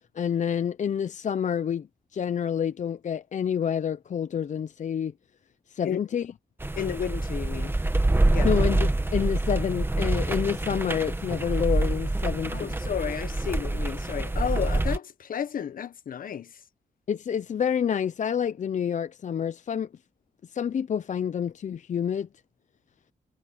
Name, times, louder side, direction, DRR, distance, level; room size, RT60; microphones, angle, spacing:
voice 1, 0.0-5.1 5.7-6.3 8.4-12.8 17.1-19.9 20.4-22.3, left 8 dB, 55° left, 0.6 m, -28 dB
sound 1, 6.6-15.0, right 2 dB, 15° right, 1.3 m, -26 dB
voice 2, 6.8-7.7 8.3-8.5 12.5-16.5, left 8 dB, 70° left, 1.2 m, -32 dB
cardioid pair, 95°, 15 cm